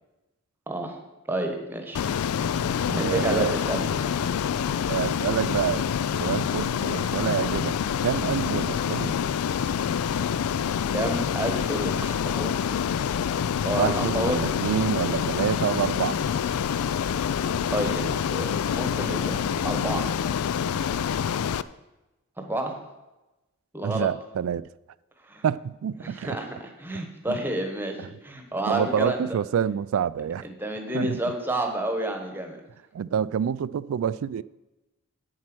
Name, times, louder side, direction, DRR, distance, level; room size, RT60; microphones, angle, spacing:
voice 1, 0.7-1.0 1.3-2.0 3.0-3.9 10.9-12.5 13.6-14.4 17.7-20.1 22.4-22.8 23.7-24.1 25.3-25.4 26.0-29.2 30.4-32.6, right 1 dB, 10° right, 1.1 m, -30 dB
Ocean, 1.9-21.6, left 8 dB, 85° left, 0.4 m, -27 dB
voice 2, 2.9-3.6 4.9-5.9 6.2-7.8 8.0-9.1 13.7-16.2 23.8-24.7 25.4-26.4 27.3-27.4 28.0-28.1 28.7-30.5 30.9-31.2 32.9-34.4, right 8 dB, 75° right, 0.3 m, -27 dB
8.6 x 7.4 x 6.1 m
head